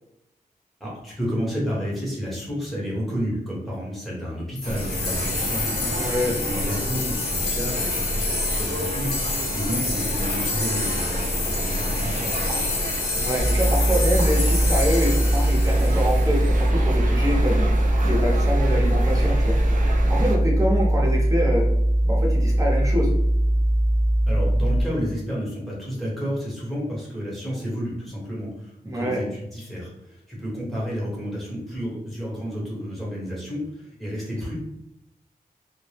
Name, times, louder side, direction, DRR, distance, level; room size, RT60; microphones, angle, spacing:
voice 1, 0.8-6.0 6.5-12.6 24.3-34.6, equal, ahead, -6 dB, 1.0 m, -31 dB
sound 1, 4.6-16.6, left 4 dB, 85° left, 0.5 m, -29 dB
sound 2, 4.6-20.4, right 1 dB, 55° right, 0.5 m, -29 dB
voice 2, 5.9-6.4 13.1-19.6 20.1-21.7 22.0-23.1 28.8-29.2, equal, 20° right, -3 dB, 0.8 m, -26 dB
sound 3, 13.4-24.8, right 1 dB, 35° left, 0.6 m, -21 dB
2.0 x 2.0 x 3.2 m, 0.82 s
wide cardioid pair, 100°, 16 cm